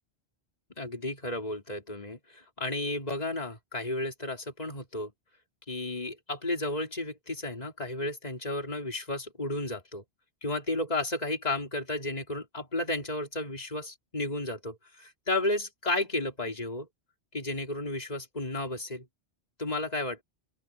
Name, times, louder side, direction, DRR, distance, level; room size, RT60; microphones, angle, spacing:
voice 1, 0.8-5.1 5.7-10.0 10.4-16.9 17.3-19.1 19.6-20.2, left 2 dB, 35° left, 3.5 m, -33 dB
open air
omnidirectional pair, 1.1 m